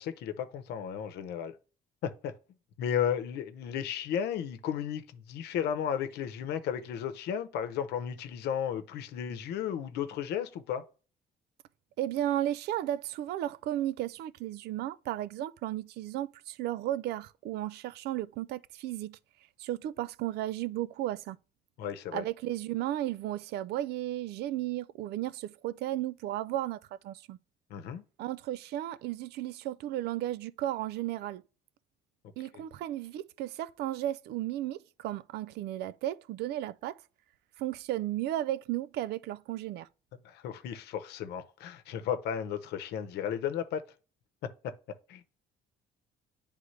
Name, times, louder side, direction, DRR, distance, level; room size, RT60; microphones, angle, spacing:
voice 1, 0.0-1.5 2.0-2.3 2.8-10.8 21.8-22.2 27.7-28.0 32.5-32.6 40.2-43.8 45.1-45.2, left 8 dB, 75° left, 0.8 m, -34 dB
voice 2, 12.0-19.2 19.6-21.4 22.1-27.4 28.2-31.4 32.4-37.0 37.6-39.9, right 13 dB, 75° right, 0.4 m, -34 dB
9.4 x 3.5 x 3.2 m
cardioid pair, 110°, 17 cm